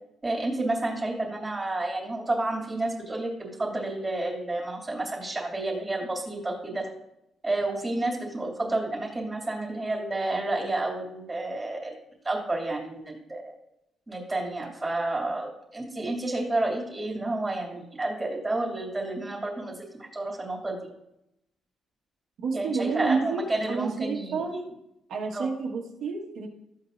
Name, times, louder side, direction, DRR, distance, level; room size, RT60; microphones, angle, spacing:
voice 1, 0.2-6.9 7.4-12.0 12.2-13.5 14.1-20.8 22.5-24.6 25.3-25.6, right 2 dB, 15° right, -2 dB, 2.7 m, -30 dB
voice 2, 22.4-24.6 25.1-26.5, right 4 dB, 70° right, -1 dB, 1.5 m, -29 dB
14.5 x 8.4 x 2.7 m, 0.84 s
cardioid pair, 140°, 0 cm